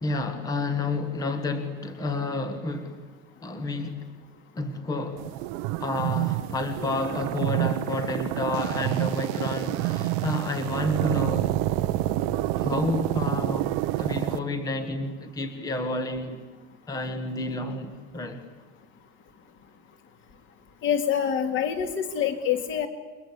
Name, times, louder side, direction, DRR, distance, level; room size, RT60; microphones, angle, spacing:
voice 1, 0.0-3.1 3.4-4.1 4.5-5.3 5.8-11.5 12.6-13.7 14.0-16.4 16.9-18.4, left 2 dB, 10° left, 1.4 m, -30 dB
sound 1, 5.2-14.4, right 15 dB, 45° right, 1.1 m, -28 dB
voice 2, 20.8-22.9, left 8 dB, 30° left, 2.6 m, -26 dB
29.5 x 23.0 x 8.5 m
supercardioid pair, 165°, 41 cm